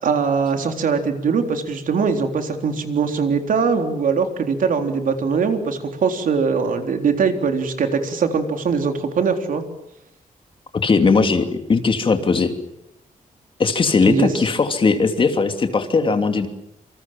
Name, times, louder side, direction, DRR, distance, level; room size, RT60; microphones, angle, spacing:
voice 1, 0.0-9.6 14.1-14.3, right 5 dB, 75° right, 5 dB, 3.8 m, -21 dB
voice 2, 10.8-12.5 13.6-16.5, left 4 dB, 40° left, 6 dB, 2.9 m, -18 dB
27.5 x 27.5 x 7.5 m, 0.77 s
wide cardioid pair, 170°, 14 cm